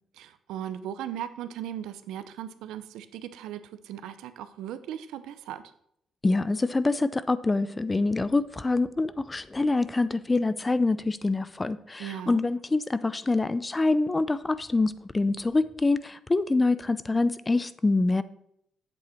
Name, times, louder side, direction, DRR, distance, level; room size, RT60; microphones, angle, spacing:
voice 1, 0.1-5.6 12.0-12.5, right 10 dB, 90° right, 11 dB, 0.6 m, -38 dB
voice 2, 6.2-18.2, left 3 dB, 20° left, 15 dB, 0.5 m, -25 dB
8.5 x 7.6 x 4.4 m, 0.74 s
cardioid pair, 90°, 0 cm